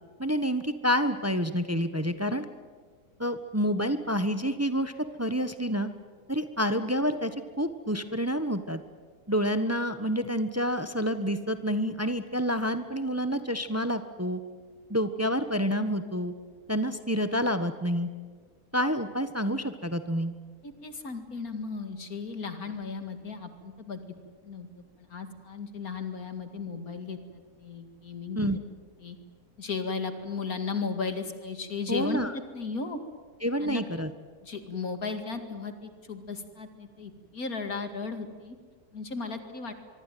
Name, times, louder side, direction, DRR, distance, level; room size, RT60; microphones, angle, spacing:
voice 1, 0.2-2.4 3.2-4.9 5.2-5.9 6.3-8.8 9.3-14.4 14.9-16.3 16.7-18.1 18.7-20.3 28.3-28.6 31.9-32.3 33.4-34.1, equal, 10° right, 10 dB, 1.0 m, -28 dB
voice 2, 20.6-24.0 24.4-28.6 29.0-29.2 29.6-33.0 33.6-33.8 34.4-38.6 38.9-39.7, left 4 dB, 65° left, 8 dB, 2.5 m, -35 dB
24.5 x 23.5 x 9.2 m, 1.5 s
omnidirectional pair, 1.7 m